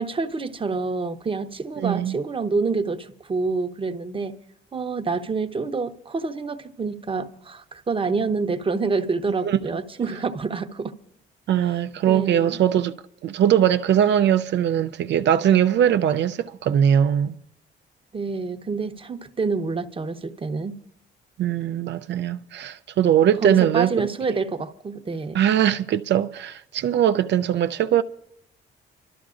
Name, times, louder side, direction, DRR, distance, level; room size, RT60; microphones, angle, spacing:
voice 1, 0.0-4.4 4.7-11.0 12.1-12.6 18.1-20.8 23.4-25.4, right 4 dB, 25° right, 0.8 m, -27 dB
voice 2, 1.8-2.1 9.4-9.8 11.5-12.9 13.2-17.4 21.4-24.4 25.3-28.0, right 10 dB, 65° right, 0.5 m, -21 dB
29.0 x 13.0 x 2.5 m
cardioid pair, 90°, 20 cm